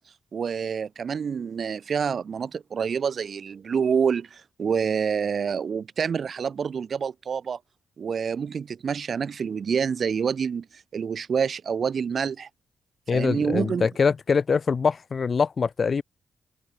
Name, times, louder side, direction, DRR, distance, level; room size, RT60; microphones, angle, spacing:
voice 1, 0.3-7.6 8.0-12.5 13.1-13.9, right 6 dB, 60° right, 0.9 m, -27 dB
voice 2, 13.1-16.0, left 5 dB, 50° left, 0.9 m, -23 dB
supercardioid pair, 50°, 0 cm